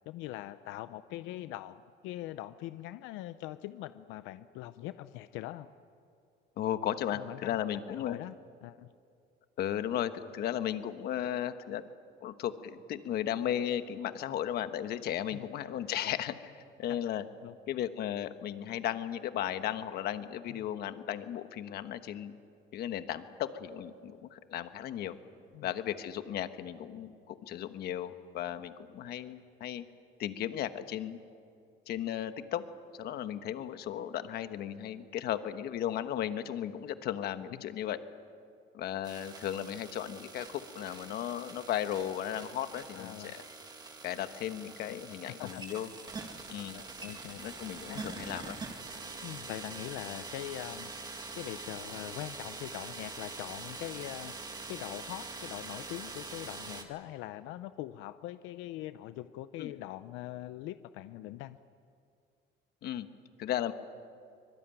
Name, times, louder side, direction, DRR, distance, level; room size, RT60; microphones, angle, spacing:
voice 1, 0.1-1.8 2.0-5.7 7.1-7.6 7.9-8.4 8.6-8.9 15.3-15.5 16.0-16.2 16.9-17.0 17.4-17.6 20.5-20.7 25.5-25.7 37.5-37.6 42.9-43.3 44.9-45.0 45.2-45.6 46.7-47.4 47.9-48.0 49.2-50.9 51.4-54.4 54.7-61.6, left 15 dB, 90° left, 12 dB, 0.7 m, -42 dB
voice 2, 6.6-8.2 9.6-11.8 12.2-16.5 16.8-17.2 17.7-22.4 22.7-25.2 25.6-29.9 30.2-31.2 31.9-32.6 33.0-38.0 38.7-43.4 44.0-45.9 46.5-46.8 47.4-48.6 59.6-59.7 62.8-63.1 63.4-63.7, left 11 dB, 55° left, 10 dB, 1.2 m, -35 dB
sound 1, 39.0-56.8, right 3 dB, 20° right, 2.1 m, -44 dB
24.5 x 22.5 x 9.1 m, 2.4 s
cardioid pair, 165°, 20 cm